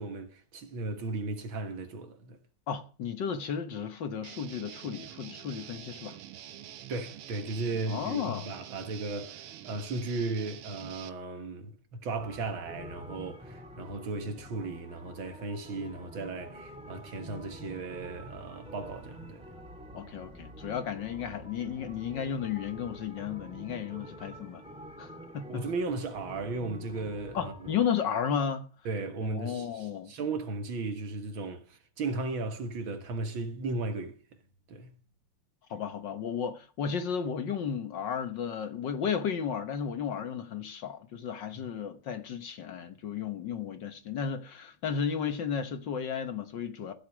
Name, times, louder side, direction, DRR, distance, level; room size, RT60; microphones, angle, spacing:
voice 1, 0.0-2.4 6.9-19.5 25.5-27.5 28.9-34.2 34.7-34.9 41.6-41.7, right 3 dB, 65° right, 2.4 m, -36 dB
voice 2, 2.7-6.2 7.9-8.5 19.9-24.6 25.0-25.6 27.3-28.7 29.2-30.1 35.7-46.9, left 7 dB, 60° left, 1.7 m, -33 dB
Guitar, 4.2-11.1, right 11 dB, 90° right, 1.9 m, -46 dB
sound 1, 12.2-27.8, equal, 5° right, 2.3 m, -47 dB
15.0 x 8.0 x 6.3 m
omnidirectional pair, 2.4 m